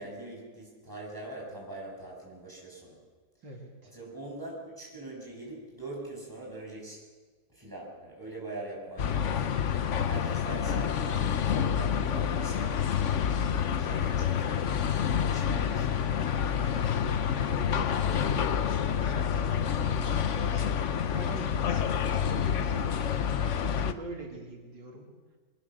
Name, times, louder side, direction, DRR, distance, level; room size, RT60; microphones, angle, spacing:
voice 1, 0.0-3.0 3.9-7.0 7.5-9.5 10.0-12.9 13.5-14.7 15.1-16.6, right 2 dB, 10° right, -3 dB, 7.4 m, -43 dB
voice 2, 3.4-3.9 17.4-23.0 23.6-25.1, right 2 dB, 85° right, -1 dB, 3.6 m, -43 dB
sound 1, 9.0-23.9, left 8 dB, 50° left, 1.0 m, -28 dB
23.5 x 20.0 x 6.6 m, 1.4 s
omnidirectional pair, 1.9 m